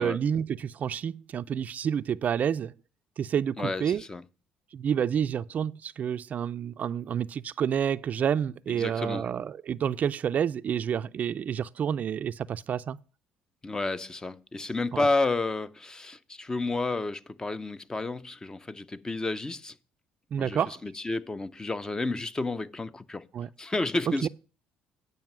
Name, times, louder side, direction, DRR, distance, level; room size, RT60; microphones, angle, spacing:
voice 1, 0.0-2.7 3.2-4.0 4.7-13.0 14.9-15.1 20.3-20.8 23.3-23.5 24.2-24.3, right 8 dB, 50° right, 0.4 m, -29 dB
voice 2, 3.6-4.2 8.7-9.3 13.6-19.7 20.4-23.3 23.6-24.3, left 3 dB, 20° left, 0.6 m, -31 dB
9.2 x 5.5 x 5.9 m
supercardioid pair, 75°, 3 cm